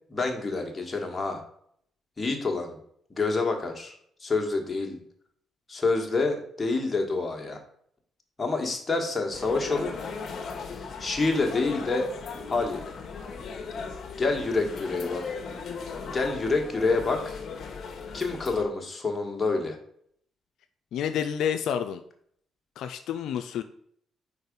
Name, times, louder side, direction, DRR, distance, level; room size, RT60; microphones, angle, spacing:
voice 1, 0.1-1.4 2.2-2.7 3.1-3.9 4.2-5.0 5.7-7.6 8.4-9.9 10.7-12.1 12.5-12.9 14.2-15.2 16.1-17.4 18.1-19.8, left 3 dB, 25° left, 2 dB, 1.4 m, -27 dB
sound 1, 9.3-18.6, left 5 dB, 55° left, 0.9 m, -37 dB
voice 2, 20.9-22.0 22.8-23.6, left 8 dB, 80° left, 8 dB, 0.3 m, -29 dB
4.8 x 4.0 x 5.3 m, 0.66 s
cardioid pair, 90°, 0 cm